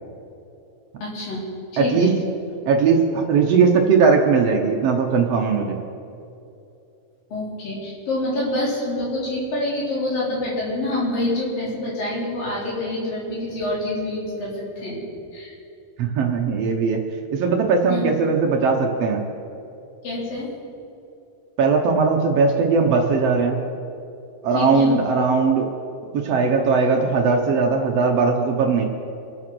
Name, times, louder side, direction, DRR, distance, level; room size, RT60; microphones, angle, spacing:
voice 1, 1.0-1.5 1.7-2.2 7.3-15.0 15.3-15.5 17.9-18.0 20.0-20.5 24.5-25.0, left 1 dB, 65° left, -5 dB, 5.4 m, -26 dB
voice 2, 1.8-2.1 2.6-5.8 16.0-17.0 17.3-19.2 21.6-23.6 24.4-25.7 26.1-28.8, right 4 dB, 70° right, 2 dB, 1.5 m, -19 dB
25.5 x 9.0 x 6.2 m, 2.7 s
omnidirectional pair, 4.3 m